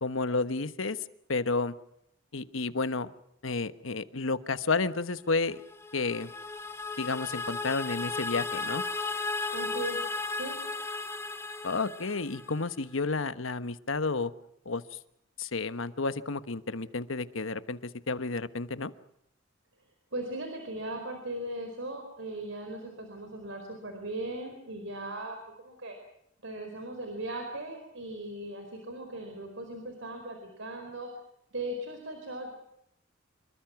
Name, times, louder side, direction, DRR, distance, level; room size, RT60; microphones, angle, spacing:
voice 1, 0.0-1.0 1.3-1.7 2.3-3.1 3.4-5.6 5.9-6.3 7.0-8.8 11.6-14.3 14.6-15.0 15.4-18.9, left 3 dB, 90° left, 12 dB, 1.3 m, -31 dB
sound 1, 5.6-12.7, left 3 dB, 15° left, 1.5 m, -35 dB
voice 2, 9.5-10.0 10.4-10.6 20.1-26.0 26.4-31.1 31.5-32.5, right 1 dB, 75° right, 5 dB, 4.7 m, -38 dB
27.0 x 23.0 x 6.0 m, 0.77 s
head